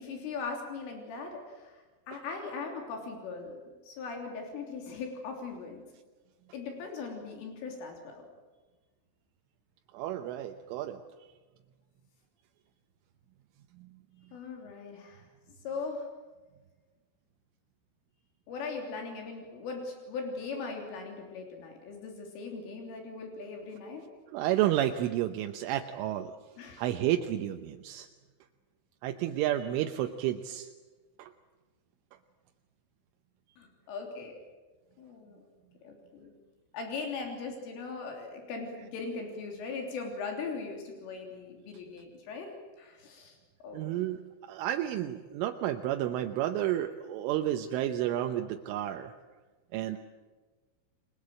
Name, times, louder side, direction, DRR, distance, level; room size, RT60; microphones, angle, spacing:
voice 1, 0.0-1.7 2.1-3.6 3.9-5.8 6.5-8.2 14.3-15.2 15.7-16.1 18.5-24.0 26.6-26.8 33.6-34.4 35.0-35.5 35.8-36.3 36.7-42.5 42.8-43.4 43.6-43.9, left 4 dB, 80° left, 2 dB, 5.9 m, -39 dB
voice 2, 9.9-11.0 24.3-26.3 26.8-28.1 29.0-30.7 31.2-31.3 43.7-44.2 44.5-49.1 49.7-50.0, right 12 dB, 80° right, 5 dB, 3.4 m, -31 dB
30.0 x 22.0 x 7.7 m, 1.3 s
omnidirectional pair, 5.7 m